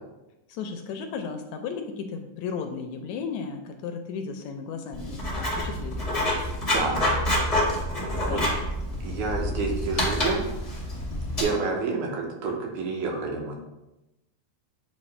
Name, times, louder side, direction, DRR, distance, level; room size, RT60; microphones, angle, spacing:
voice 1, 0.5-5.3 5.6-6.0 8.1-8.6 11.1-11.6, left 5 dB, 80° left, 6 dB, 1.7 m, -35 dB
Writing, 4.9-11.4, left 1 dB, 35° left, 0.5 m, -27 dB
voice 2, 6.7-7.0 8.3-8.4 9.0-10.4 11.4-13.6, right 4 dB, 90° right, 0 dB, 2.6 m, -29 dB
8.4 x 3.0 x 4.2 m, 0.97 s
omnidirectional pair, 3.5 m